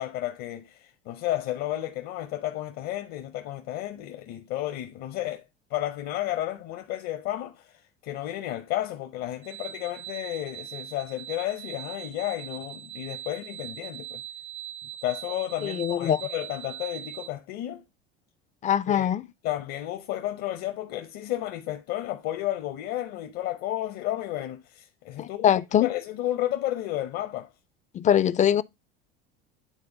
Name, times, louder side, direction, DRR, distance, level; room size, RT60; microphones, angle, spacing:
voice 1, 0.0-5.4 5.7-14.2 15.0-17.8 18.9-19.1 19.4-25.5 25.8-27.5, left 13 dB, 55° left, 0.8 m, -32 dB
sound 1, 9.4-17.3, right 11 dB, 70° right, 1.0 m, -41 dB
voice 2, 15.6-16.2 18.6-19.2 25.2-25.9 27.9-28.6, left 9 dB, 25° left, 0.4 m, -22 dB
9.3 x 3.5 x 3.8 m
hypercardioid pair, 75°, 30 cm